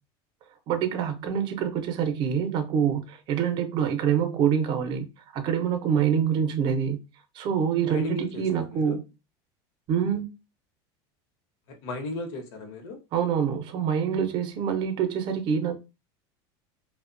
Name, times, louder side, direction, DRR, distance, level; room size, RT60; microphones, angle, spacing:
voice 1, 0.7-5.1 5.3-7.0 7.4-9.0 9.9-10.3 13.1-15.8, right 8 dB, 35° right, 0.5 m, -26 dB
voice 2, 7.8-9.0 11.7-13.0, left 2 dB, 75° left, 0.8 m, -35 dB
2.7 x 2.1 x 2.5 m
cardioid pair, 160°, 13 cm